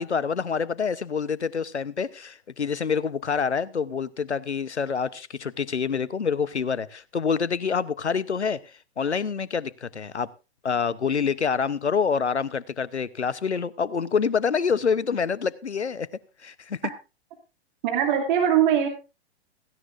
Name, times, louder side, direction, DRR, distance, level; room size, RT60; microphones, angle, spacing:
voice 1, 0.0-8.6 9.0-10.3 10.6-16.1 16.4-16.8, left 6 dB, 90° left, 0.9 m, -26 dB
voice 2, 17.8-18.9, right 9 dB, 45° right, 2.5 m, -21 dB
17.0 x 15.0 x 2.5 m
figure-of-eight pair, 110°, 33 cm